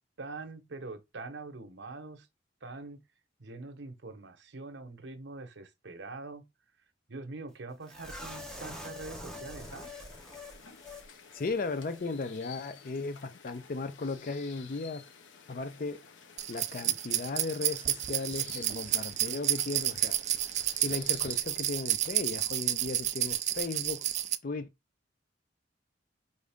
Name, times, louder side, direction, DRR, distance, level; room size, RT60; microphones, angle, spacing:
voice 1, 0.2-2.3 2.6-3.0 3.4-6.4 7.1-9.9, right 3 dB, 65° right, 0.9 m, -44 dB
sound 1, 7.9-11.1 11.3-11.5 11.9-12.0, left 1 dB, 5° left, 0.9 m, -44 dB
sound 2, 9.6-21.4, left 6 dB, 75° left, 0.8 m, -53 dB
voice 2, 11.1-15.0 15.5-16.1 16.5-20.2 20.8-24.1 24.4-24.7, left 3 dB, 45° left, 0.5 m, -36 dB
sound 3, 16.4-24.3, right 12 dB, 40° right, 0.3 m, -30 dB
5.0 x 2.6 x 3.5 m
head